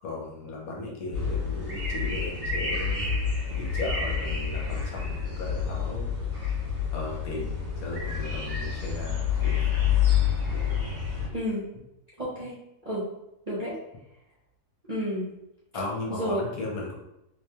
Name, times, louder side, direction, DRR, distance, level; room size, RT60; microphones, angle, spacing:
voice 1, 0.0-3.2 3.6-6.1 6.9-9.6 15.7-16.9, left 2 dB, 70° left, -2 dB, 1.2 m, -36 dB
sound 1, 1.1-11.3, left 7 dB, 80° right, 2.2 m, -28 dB
voice 2, 11.3-11.7 12.2-12.5 12.8-13.1 13.5-13.8 14.9-15.3 16.1-16.4, equal, 40° right, -9 dB, 0.5 m, -30 dB
4.0 x 3.1 x 2.3 m, 0.86 s
omnidirectional pair, 1.7 m